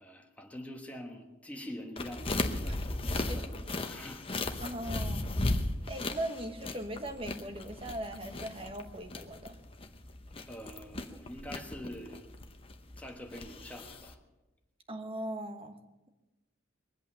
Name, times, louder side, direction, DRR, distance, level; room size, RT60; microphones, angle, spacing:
voice 1, 0.0-4.2 10.4-12.2 13.0-14.2, equal, 5° left, 1.2 m, -45 dB
sound 1, 2.0-14.1, left 2 dB, 25° left, 0.9 m, -36 dB
voice 2, 4.6-5.3 5.9-9.6 14.9-15.8, right 1 dB, 25° right, 1.3 m, -39 dB
22.0 x 8.3 x 6.9 m
head